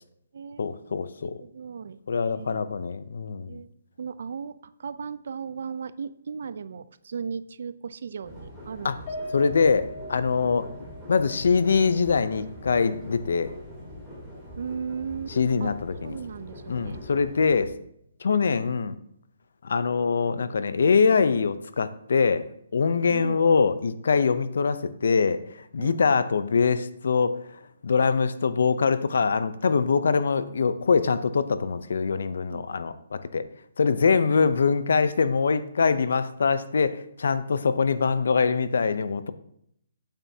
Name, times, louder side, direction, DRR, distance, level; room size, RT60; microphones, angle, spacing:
voice 1, 0.6-1.4 2.1-3.6 8.8-9.0 9.3-10.7 11.1-13.5 15.4-16.2 16.7-17.7 18.2-18.9 19.6-27.4 27.8-33.5 33.8-39.3, left 5 dB, 75° left, 13 dB, 0.6 m, -23 dB
voice 2, 1.4-2.0 2.4-2.6 3.3-3.7 4.0-9.0 10.4-10.5 14.6-15.7 16.0-17.0 23.1-23.4 25.8-26.0 32.5-32.7 34.1-34.2, right 6 dB, 65° right, 15 dB, 0.5 m, -36 dB
sound 1, 8.2-17.7, left 1 dB, 5° left, 3.2 m, -43 dB
Piano, 9.1-13.5 13.9-14.1 14.5-14.6, equal, 40° left, 1.9 m, -41 dB
9.4 x 8.9 x 2.8 m, 0.72 s
hypercardioid pair, 160°, 0 cm